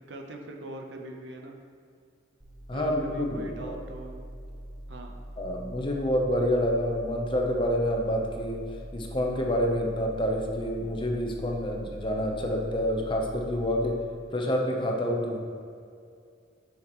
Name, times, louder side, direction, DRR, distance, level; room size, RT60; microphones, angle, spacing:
voice 1, 0.0-1.6 2.7-4.2 4.9-5.2, right 1 dB, 65° right, 3 dB, 0.8 m, -41 dB
sound 1, 2.4-13.9, equal, 20° right, 1.0 m, -43 dB
voice 2, 2.7-3.8 5.4-8.6 8.9-13.9 14.3-15.4, equal, 25° left, 0 dB, 0.7 m, -28 dB
8.6 x 5.8 x 3.0 m, 2.3 s
head